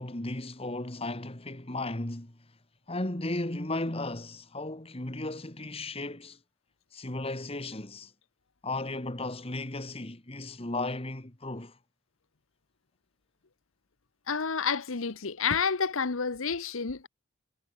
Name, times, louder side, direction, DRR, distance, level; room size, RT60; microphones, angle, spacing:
voice 1, 0.0-2.4 2.9-6.4 6.9-8.1 8.6-11.7, left 2 dB, 25° left, 1.8 m, -35 dB
voice 2, 14.3-17.1, left 5 dB, 65° left, 1.0 m, -29 dB
head